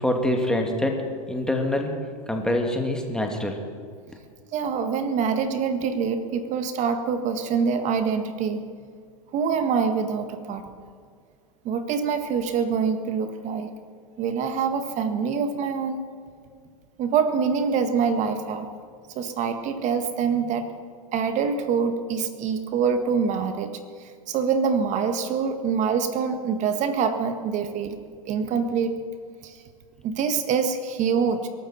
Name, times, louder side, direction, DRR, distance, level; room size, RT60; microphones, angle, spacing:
voice 1, 0.0-2.0 2.3-3.6, left 1 dB, 5° left, 2 dB, 2.5 m, -25 dB
voice 2, 4.5-8.7 9.3-10.6 11.7-13.7 14.2-16.0 17.0-18.7 19.2-20.7 21.1-23.8 24.3-28.0 28.3-29.0 29.4-29.6 30.0-31.5, right 6 dB, 40° right, 8 dB, 1.8 m, -25 dB
22.5 x 13.0 x 4.4 m, 2.1 s
hypercardioid pair, 110°, 19 cm